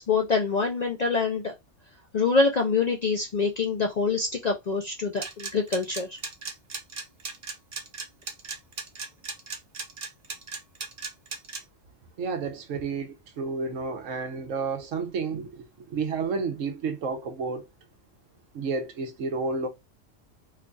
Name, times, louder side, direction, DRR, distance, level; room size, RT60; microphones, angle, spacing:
voice 1, 0.0-1.5 2.1-6.2, left 4 dB, 60° left, 0.4 m, -25 dB
sound 1, 5.2-11.6, right 4 dB, 40° right, 0.6 m, -36 dB
voice 2, 12.2-17.7 18.5-19.7, right 4 dB, 85° right, 1.1 m, -31 dB
3.2 x 2.3 x 3.7 m
omnidirectional pair, 1.3 m